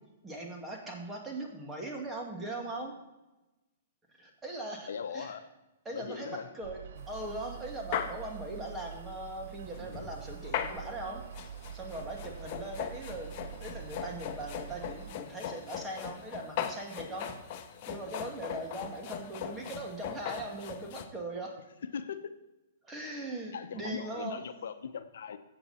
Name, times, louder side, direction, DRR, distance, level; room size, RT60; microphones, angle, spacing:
voice 1, 0.2-3.0 4.1-5.3 5.8-6.8 7.1-21.6 22.8-24.4, right 2 dB, 15° right, 0 dB, 2.4 m, -40 dB
voice 2, 4.9-5.4 5.9-6.5 21.9-22.3 23.5-25.4, left 7 dB, 75° left, 9 dB, 0.9 m, -39 dB
sound 1, 6.6-15.2, right 9 dB, 65° right, 0.4 m, -45 dB
sound 2, 7.0-7.1 7.5-7.6 7.9-8.2 9.4-21.1, left 9 dB, 45° left, 1.1 m, -39 dB
14.5 x 7.9 x 4.3 m, 1.0 s
hypercardioid pair, 140°, 0 cm